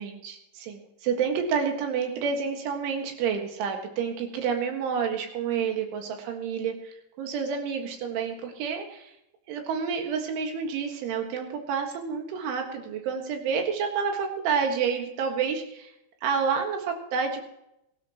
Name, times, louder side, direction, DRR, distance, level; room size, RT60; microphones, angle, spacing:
voice 1, 0.0-9.1 9.5-15.9 16.2-17.4, right 6 dB, 75° right, 4 dB, 4.1 m, -29 dB
23.0 x 13.0 x 3.0 m, 0.84 s
omnidirectional pair, 5.5 m